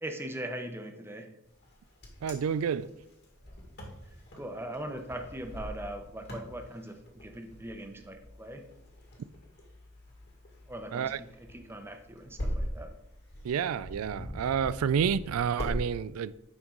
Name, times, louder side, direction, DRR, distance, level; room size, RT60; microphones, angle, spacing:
voice 1, 0.0-1.3 4.3-8.6 10.7-11.1 11.5-12.9, right 1 dB, 10° right, 0.8 m, -40 dB
Wind, 1.6-15.8, equal, 55° left, 1.9 m, -41 dB
voice 2, 2.2-2.9 10.9-11.2 13.4-16.3, right 7 dB, 80° right, 0.3 m, -29 dB
8.7 x 5.4 x 3.8 m
head